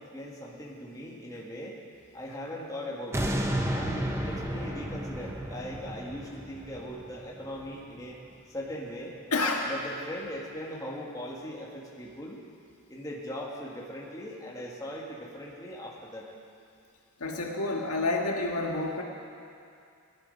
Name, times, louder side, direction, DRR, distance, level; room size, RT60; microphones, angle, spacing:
voice 1, 0.0-1.8 2.1-3.2 3.7-8.2 8.5-9.2 9.7-12.4 12.9-16.3, equal, 15° left, -4 dB, 1.7 m, -39 dB
sound 1, 3.1-8.2 8.7-8.8, right 1 dB, 10° right, 0.8 m, -33 dB
voice 2, 9.3-9.7 17.2-19.0, left 2 dB, 85° left, 0 dB, 1.7 m, -29 dB
17.5 x 11.5 x 5.4 m, 2.4 s
head